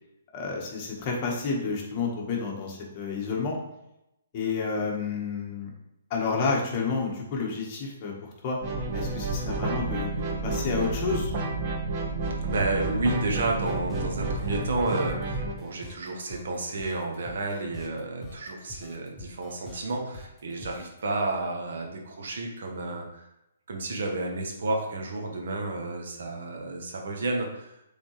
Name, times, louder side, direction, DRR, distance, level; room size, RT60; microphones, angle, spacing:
voice 1, 0.3-3.6 4.3-5.7 6.1-8.6 8.9-10.1 10.4-11.3, left 4 dB, 35° left, -2 dB, 1.5 m, -30 dB
sound 1, 8.6-15.5, right 2 dB, 40° right, 1.1 m, -30 dB
voice 2, 12.4-23.3 23.7-27.7, right 2 dB, 70° right, 1 dB, 1.3 m, -31 dB
sound 2, 13.4-21.0, left 2 dB, 10° left, 0.8 m, -46 dB
7.2 x 3.9 x 3.3 m, 0.87 s
hypercardioid pair, 150°, 0 cm